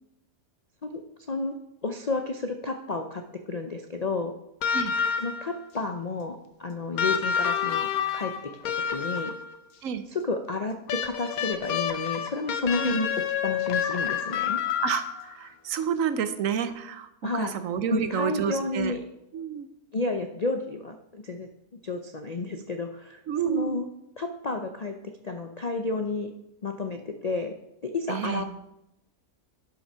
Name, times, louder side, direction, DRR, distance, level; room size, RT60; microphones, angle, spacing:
voice 1, 1.8-3.2 3.5-4.3 5.2-9.3 10.1-13.1 13.4-14.6 17.2-17.5 17.9-19.0 19.9-21.5 21.8-23.2 23.5-23.9 24.2-26.3 26.6-27.5 27.8-28.4, left 3 dB, 50° left, 5 dB, 0.5 m, -31 dB
sound 1, 4.6-5.6 7.0-9.5 10.9-15.3 16.7-16.8, left 7 dB, 75° left, 1.2 m, -28 dB
voice 2, 14.8-18.9 19.3-19.7 23.3-23.8 28.1-28.4, right 8 dB, 65° right, 11 dB, 1.0 m, -29 dB
11.0 x 6.0 x 5.6 m, 0.86 s
omnidirectional pair, 1.6 m